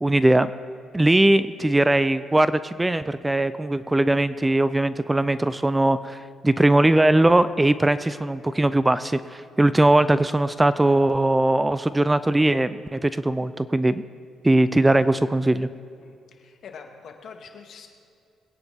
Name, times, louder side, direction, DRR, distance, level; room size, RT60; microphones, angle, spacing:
voice 1, 0.0-0.5 0.9-6.2 6.4-14.0 14.4-15.7, right 1 dB, 15° right, 14 dB, 0.4 m, -20 dB
voice 2, 16.0-17.9, left 6 dB, 65° left, 4 dB, 1.7 m, -44 dB
22.5 x 9.4 x 3.5 m, 2.4 s
cardioid pair, 90°, 0 cm